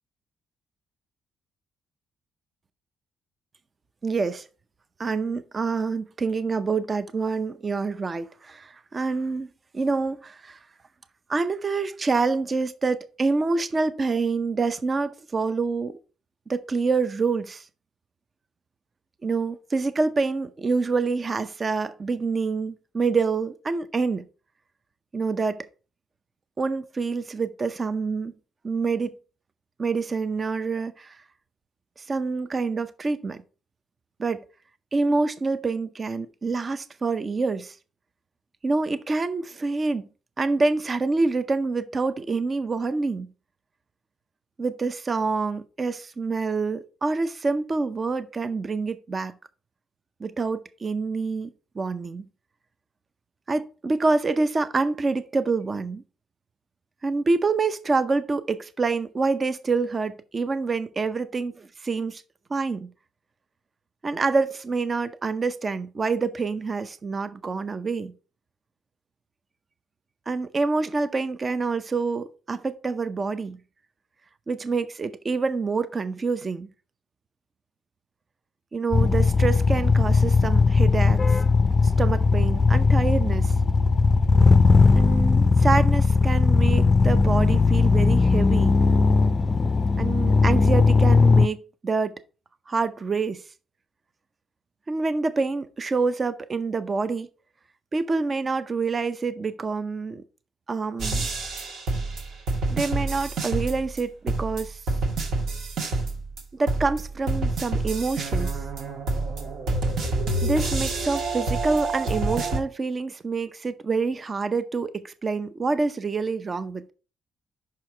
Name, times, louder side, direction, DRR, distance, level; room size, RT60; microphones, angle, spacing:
voice 1, 4.0-4.4 5.0-9.5 9.7-10.6 11.3-16.0 16.5-17.6 19.2-24.2 25.1-25.7 26.6-28.3 28.6-29.2 29.8-31.2 32.1-33.4 34.2-34.4 34.9-37.7 38.6-40.1 40.4-43.3 44.6-49.3 50.2-51.5 51.8-52.3 53.5-56.0 57.0-62.2 62.5-62.9 64.0-68.1 70.3-73.6 74.5-76.7 78.7-81.4 81.8-83.5 84.9-88.8 90.0-92.2 92.7-93.4 94.9-97.3 97.9-100.2 100.7-101.3 102.7-104.8 106.5-108.6 110.4-116.9, right 4 dB, 35° right, 0.6 m, -26 dB
sound 1, 78.9-91.5, left 4 dB, 30° left, 0.4 m, -18 dB
sound 2, 101.0-104.0 104.3-106.4 106.7-112.6, right 2 dB, 75° right, 1.6 m, -27 dB
5.9 x 4.6 x 4.4 m
cardioid pair, 90°, 0 cm